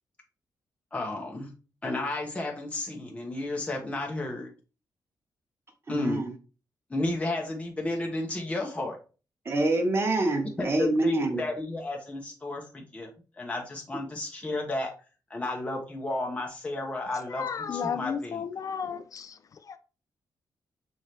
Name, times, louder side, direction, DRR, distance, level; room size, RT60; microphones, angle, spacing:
voice 1, 0.9-1.5 1.8-4.5 5.9-6.2 6.9-9.0 10.6-14.9 15.3-18.4, left 2 dB, 15° left, 0 dB, 1.0 m, -32 dB
voice 2, 5.9-6.3 9.4-11.4, right 2 dB, 35° right, 3 dB, 1.1 m, -26 dB
voice 3, 17.3-19.8, left 7 dB, 50° left, 10 dB, 0.4 m, -33 dB
5.7 x 2.8 x 3.3 m, 0.34 s
cardioid pair, 110°, 7 cm